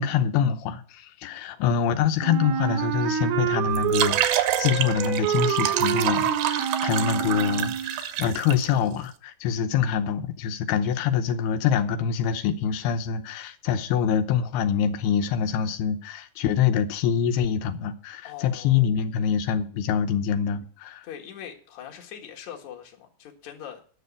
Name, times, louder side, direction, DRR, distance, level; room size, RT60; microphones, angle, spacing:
voice 1, 0.0-21.1, left 8 dB, 90° left, 2.9 m, -25 dB
Wind instrument woodwind instrument, 2.2-8.0, right 9 dB, 90° right, 3.0 m, -27 dB
sound 1, 3.7-8.6, right 11 dB, 75° right, 2.3 m, -27 dB
voice 2, 18.2-18.9 21.0-23.8, left 9 dB, 55° left, 2.6 m, -42 dB
10.0 x 6.8 x 8.2 m
omnidirectional pair, 4.4 m